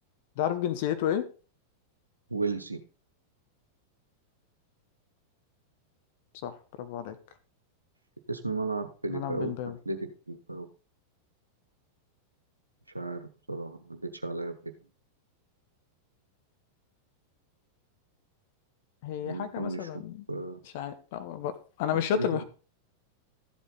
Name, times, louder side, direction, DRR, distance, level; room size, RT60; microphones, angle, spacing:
voice 1, 0.4-1.3 6.4-7.2 9.1-9.8 19.0-20.2 20.7-22.4, left 9 dB, 50° left, 10 dB, 1.1 m, -31 dB
voice 2, 2.3-2.8 8.3-9.5 9.8-10.0 10.3-10.7 12.9-14.5 19.2-19.9 20.3-20.6 22.1-22.4, right 3 dB, 85° right, 7 dB, 1.1 m, -34 dB
13.5 x 8.0 x 4.0 m, 0.37 s
figure-of-eight pair, 90°, 0 cm